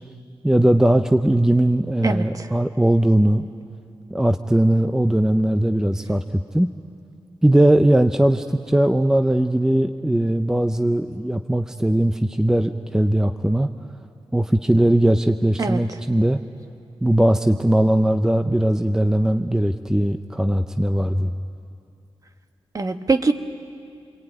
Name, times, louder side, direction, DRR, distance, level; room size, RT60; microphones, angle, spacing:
voice 1, 0.4-3.5 4.1-6.7 7.4-13.7 14.3-16.4 17.0-21.3, right 1 dB, 5° right, 7 dB, 0.6 m, -19 dB
voice 2, 2.0-2.5 15.6-15.8 22.7-23.3, right 3 dB, 35° right, 7 dB, 1.3 m, -22 dB
28.0 x 23.0 x 9.2 m, 2.4 s
wide cardioid pair, 135°, 10 cm